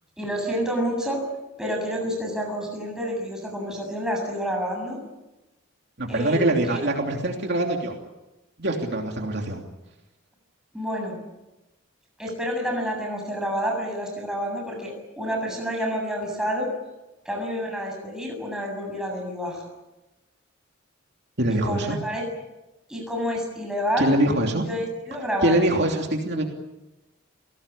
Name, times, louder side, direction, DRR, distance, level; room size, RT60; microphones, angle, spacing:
voice 1, 0.2-1.2 1.6-5.0 6.1-6.8 10.7-11.2 12.2-16.7 17.2-19.7 21.5-22.2 22.9-24.1 24.6-25.6, equal, 5° right, 0 dB, 7.6 m, -29 dB
voice 2, 6.0-7.9 8.6-9.6 21.4-22.0 24.0-24.6 25.4-26.5, right 1 dB, 50° right, 1 dB, 3.0 m, -23 dB
29.0 x 18.5 x 8.5 m, 1.0 s
head